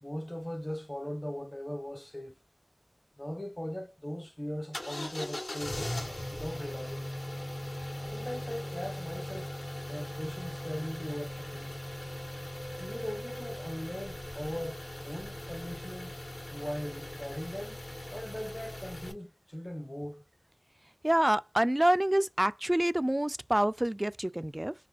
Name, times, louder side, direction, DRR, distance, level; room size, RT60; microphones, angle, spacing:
voice 1, 0.0-2.4 3.2-5.9 6.3-7.1 8.1-9.5 9.8-11.8 12.8-16.2 16.5-17.8 18.1-20.2, equal, 20° left, 0.9 m, -39 dB
sound 1, 4.7-19.1, left 1 dB, 65° left, 2.2 m, -39 dB
voice 2, 21.0-24.7, right 1 dB, 25° right, 0.3 m, -27 dB
6.0 x 2.2 x 2.9 m
wide cardioid pair, 40°, 0 cm